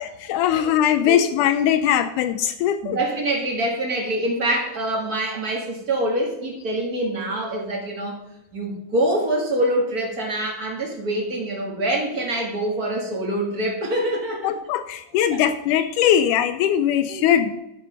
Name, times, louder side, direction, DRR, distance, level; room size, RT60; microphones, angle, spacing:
voice 1, 0.0-3.0 14.4-17.5, left 10 dB, 85° left, 10 dB, 2.0 m, -20 dB
voice 2, 2.8-8.2 8.5-14.5 17.1-17.4, right 1 dB, 35° right, 0 dB, 1.6 m, -25 dB
12.5 x 5.6 x 5.3 m, 0.92 s
omnidirectional pair, 3.6 m